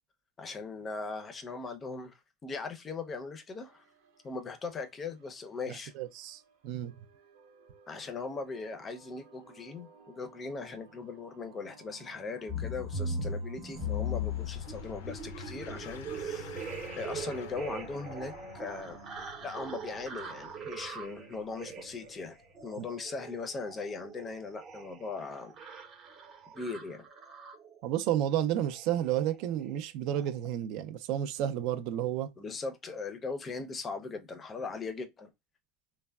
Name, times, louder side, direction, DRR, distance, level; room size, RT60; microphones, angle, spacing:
voice 1, 0.4-2.1 2.4-3.8 4.2-5.9 7.9-16.6 17.0-19.0 19.4-25.6 26.5-27.1 32.4-35.3, left 4 dB, 20° left, 0.5 m, -39 dB
sound 1, 3.6-22.1, right 6 dB, 85° right, 0.9 m, -59 dB
voice 2, 5.7-6.9 22.8-22.9 27.8-32.3, right 11 dB, 60° right, 0.4 m, -31 dB
sound 2, 12.5-27.9 28.6-28.9 29.1-29.4 29.6-29.8 30.1-30.3, left 1 dB, 30° right, 0.7 m, -40 dB
sound 3, 13.7-24.8, left 6 dB, 90° left, 0.5 m, -48 dB
3.3 x 2.1 x 2.2 m
supercardioid pair, 145°, 0 cm